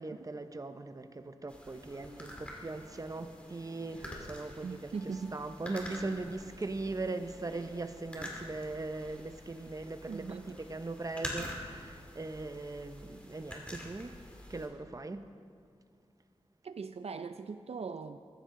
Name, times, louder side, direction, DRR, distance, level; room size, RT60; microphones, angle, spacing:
voice 1, 0.0-4.9 5.3-14.2 14.5-15.2, right 2 dB, 35° right, 9 dB, 0.7 m, -40 dB
sound 1, 1.5-14.7, left 1 dB, 10° left, 2.3 m, -47 dB
Guitar, 2.0-7.6, left 2 dB, 45° left, 1.7 m, -59 dB
voice 2, 4.6-5.4 8.2-8.3 10.1-10.6 16.6-18.2, right 5 dB, 75° right, 10 dB, 0.4 m, -40 dB
15.5 x 14.5 x 3.7 m, 2.3 s
wide cardioid pair, 95°, 11 cm